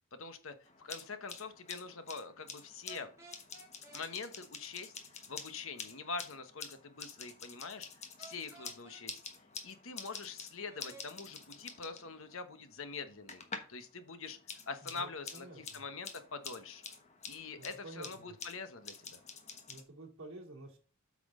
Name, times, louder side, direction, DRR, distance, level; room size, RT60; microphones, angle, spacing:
voice 1, 0.1-3.1 3.9-4.9 5.3-7.9 8.2-9.2 9.6-13.4 13.7-14.4 14.7-16.8 17.3-19.2, left 4 dB, 65° left, 10 dB, 1.1 m, -44 dB
sound 1, 0.6-13.8 14.1-19.8, left 5 dB, 30° left, 1.2 m, -49 dB
sound 2, 2.9-4.0 8.2-9.0 10.7-11.1, right 3 dB, 15° right, 2.1 m, -54 dB
voice 2, 14.8-15.8 17.6-18.3 19.7-20.8, right 2 dB, 65° right, -1 dB, 2.9 m, -50 dB
8.4 x 6.1 x 3.8 m, 0.39 s
head